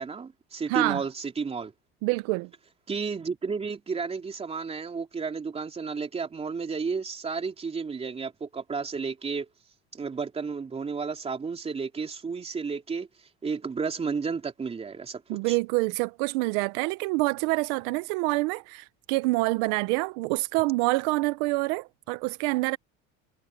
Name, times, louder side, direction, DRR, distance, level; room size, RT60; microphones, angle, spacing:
voice 1, 0.0-1.7 2.9-9.5 9.9-13.1 13.4-15.6, right 5 dB, 20° right, 3.2 m, -32 dB
voice 2, 0.7-1.0 2.0-2.5 15.3-22.8, right 23 dB, 80° right, 0.8 m, -26 dB
cardioid pair, 130°, 29 cm